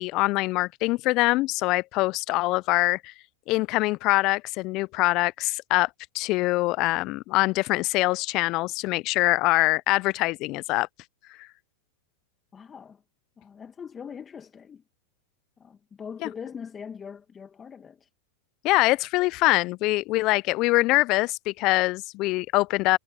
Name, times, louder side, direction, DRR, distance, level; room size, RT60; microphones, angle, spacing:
voice 1, 0.0-3.1 3.5-5.9 6.1-10.9 16.2-16.3 18.6-23.0, left 21 dB, 45° left, 0.5 m, -24 dB
voice 2, 12.5-13.0 13.4-14.8 15.6-18.1, left 7 dB, 25° left, 2.2 m, -41 dB
hypercardioid pair, 105°, 0 cm